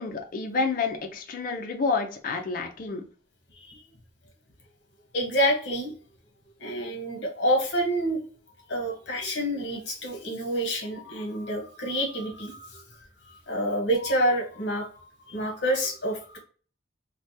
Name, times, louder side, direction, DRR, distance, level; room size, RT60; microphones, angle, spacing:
voice 1, 0.0-3.0, left 4 dB, 45° left, 2 dB, 0.4 m, -29 dB
voice 2, 5.1-5.9 6.6-8.2 8.7-12.8 13.2-16.4, equal, 65° left, 1 dB, 1.0 m, -28 dB
3.3 x 2.2 x 2.7 m, 0.40 s
head